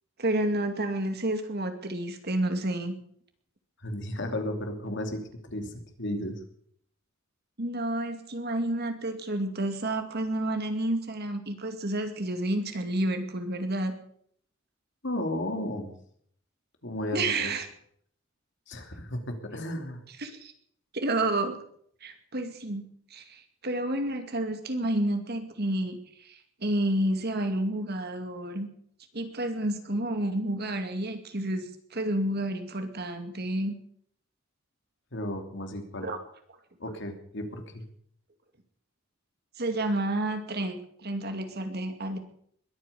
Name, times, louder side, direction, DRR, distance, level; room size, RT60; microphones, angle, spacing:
voice 1, 0.2-3.0 7.6-13.9 17.1-17.7 20.2-20.5 20.9-21.6 22.0-22.8 23.1-28.7 29.1-33.8 36.0-36.2 39.6-42.2, right 1 dB, 55° right, 7 dB, 2.3 m, -30 dB
voice 2, 3.8-6.4 15.0-15.9 16.8-17.5 18.7-20.0 35.1-36.1 36.8-37.8, left 1 dB, 60° left, 5 dB, 2.9 m, -34 dB
21.5 x 9.3 x 7.0 m, 0.65 s
head